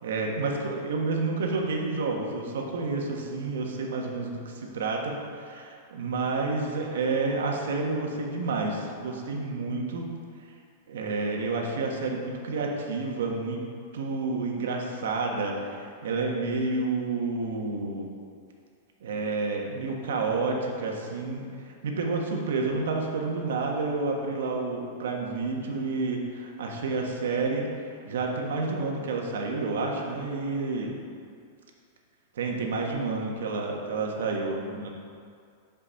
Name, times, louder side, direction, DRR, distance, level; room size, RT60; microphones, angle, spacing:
voice 1, 0.0-10.1 10.9-13.6 13.9-18.1 19.0-21.5 21.8-27.7 28.0-31.0 32.3-34.9, right 3 dB, 90° right, 0 dB, 1.4 m, -29 dB
7.8 x 5.3 x 5.7 m, 2.3 s
supercardioid pair, 165°, 0 cm